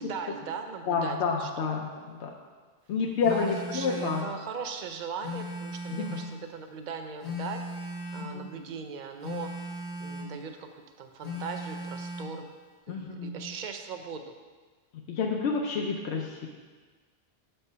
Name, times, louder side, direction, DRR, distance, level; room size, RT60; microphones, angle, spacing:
voice 1, 0.0-1.5 3.3-7.6 8.1-9.5 10.0-12.5 12.9-14.4, right 6 dB, 55° right, 6 dB, 0.6 m, -39 dB
voice 2, 0.9-2.3 2.9-4.2 5.9-6.2 8.2-8.5 12.9-13.4 14.9-16.5, left 5 dB, 85° left, 0 dB, 0.9 m, -29 dB
Telephone, 3.2-4.4 5.2-6.4 7.2-8.4 9.2-10.4 11.2-12.4, left 1 dB, 40° left, 1.0 m, -37 dB
7.0 x 3.3 x 5.4 m, 1.4 s
omnidirectional pair, 1.1 m